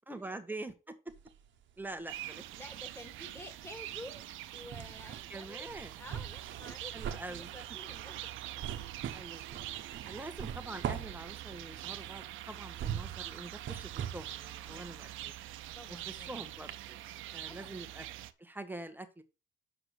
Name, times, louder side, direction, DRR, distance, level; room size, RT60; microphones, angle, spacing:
voice 1, 0.1-1.0 1.8-2.4 5.3-5.9 6.9-7.5 9.1-9.6 10.0-15.3 16.1-17.1 17.3-18.0 18.4-19.2, right 2 dB, 10° right, 1.3 m, -45 dB
sound 1, 1.1-2.2 2.5-16.3 16.7-16.8, right 9 dB, 65° right, 1.0 m, -43 dB
sound 2, 2.1-18.3, right 14 dB, 90° right, 0.6 m, -45 dB
voice 2, 2.5-4.2 4.5-8.2 9.9-10.2 14.7-15.1 15.8-16.5 17.5-17.8, left 1 dB, 10° left, 2.2 m, -51 dB
6.7 x 4.9 x 6.3 m
cardioid pair, 90°, 20 cm